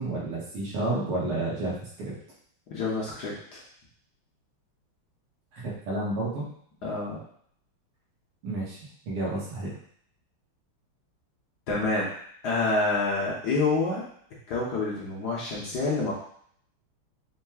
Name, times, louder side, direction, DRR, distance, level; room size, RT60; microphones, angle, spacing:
voice 1, 0.0-2.1 5.5-6.4 8.4-8.8 9.0-9.8, right 2 dB, 85° right, -6 dB, 2.3 m, -30 dB
voice 2, 2.7-3.6 6.8-7.2 11.7-12.1 12.4-14.0 14.5-16.1, left 3 dB, 60° left, -5 dB, 1.2 m, -27 dB
5.5 x 2.9 x 2.3 m, 0.63 s
omnidirectional pair, 2.4 m